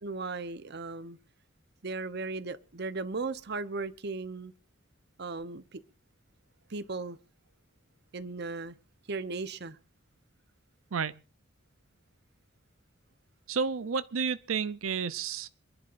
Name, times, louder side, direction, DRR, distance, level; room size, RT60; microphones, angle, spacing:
voice 1, 0.0-1.2 1.8-4.5 5.2-5.8 6.7-7.2 8.1-8.8 9.1-9.8, right 3 dB, 55° right, 0.9 m, -36 dB
voice 2, 10.9-11.2 13.5-15.5, right 5 dB, 85° right, 0.6 m, -31 dB
27.5 x 11.0 x 2.6 m
head